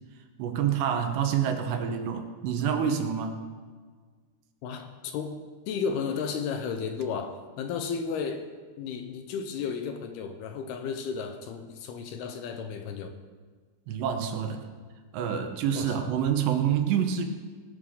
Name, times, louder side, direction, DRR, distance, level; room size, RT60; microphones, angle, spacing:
voice 1, 0.4-3.4 13.9-14.7 15.1-17.3, right 8 dB, 80° right, 5 dB, 3.3 m, -27 dB
voice 2, 4.6-8.5 8.8-13.2 15.7-15.9, left 6 dB, 75° left, 6 dB, 2.6 m, -33 dB
18.5 x 11.5 x 3.8 m, 1.5 s
omnidirectional pair, 5.0 m